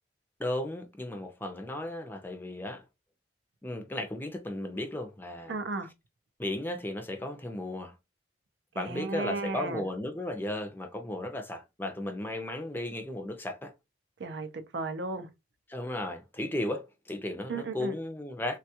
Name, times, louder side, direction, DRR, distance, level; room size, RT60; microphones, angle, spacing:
voice 1, 0.4-2.8 3.6-5.6 6.4-7.9 8.7-13.7 15.7-18.6, left 1 dB, 10° left, 0.5 m, -35 dB
voice 2, 5.5-5.9 8.8-9.9 14.2-15.3 17.5-18.0, right 3 dB, 75° right, 0.5 m, -34 dB
3.4 x 2.3 x 2.7 m
head